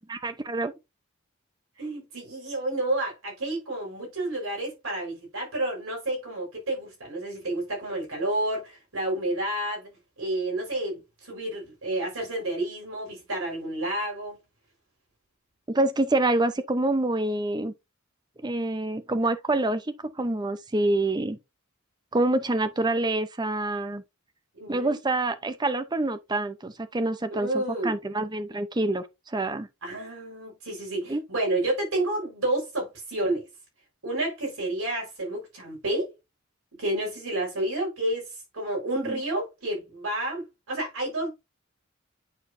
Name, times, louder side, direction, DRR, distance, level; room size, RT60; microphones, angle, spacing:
voice 1, 0.1-0.7 15.7-17.7 18.4-21.4 22.1-24.0 24.7-29.7 31.1-31.2 39.0-39.2, right 2 dB, 20° right, 0.6 m, -26 dB
voice 2, 1.8-14.4 24.5-25.0 27.4-27.9 29.8-33.4 34.0-36.1 36.8-38.3 38.5-41.3, right 1 dB, 85° right, 4.5 m, -30 dB
9.0 x 4.6 x 2.6 m
head